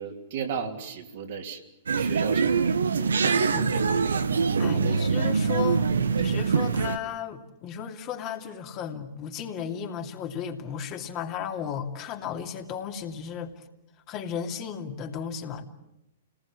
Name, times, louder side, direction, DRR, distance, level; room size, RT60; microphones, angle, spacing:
voice 1, 0.0-1.6 1.9-2.6 2.8-3.8 4.8-5.0, right 6 dB, 60° right, 2 dB, 3.2 m, -35 dB
sound 1, 1.9-7.0, right 5 dB, 80° right, 1.1 m, -24 dB
voice 2, 3.2-3.9 4.6-5.9 6.2-13.6 14.1-15.6, left 8 dB, 35° left, 2 dB, 2.7 m, -35 dB
29.5 x 19.5 x 7.4 m, 0.88 s
figure-of-eight pair, 110°, 0 cm